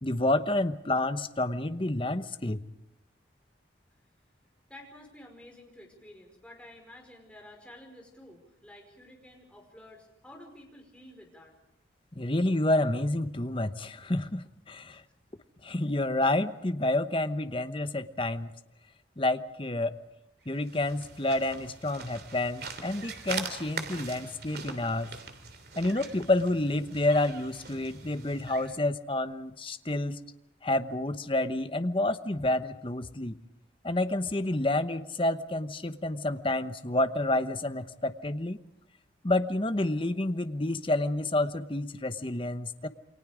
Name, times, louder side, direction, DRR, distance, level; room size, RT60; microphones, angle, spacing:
voice 1, 0.0-2.6 12.2-15.0 15.6-18.5 19.2-20.0 20.5-25.1 25.8-30.2 30.6-33.3 33.8-38.6 39.2-42.9, left 2 dB, 25° left, 10 dB, 1.0 m, -29 dB
voice 2, 4.7-11.5 14.9-15.0, left 1 dB, 5° left, 1 dB, 5.2 m, -51 dB
sound 1, 20.5-28.8, right 5 dB, 55° right, 3.1 m, -42 dB
29.0 x 24.0 x 5.1 m, 0.82 s
head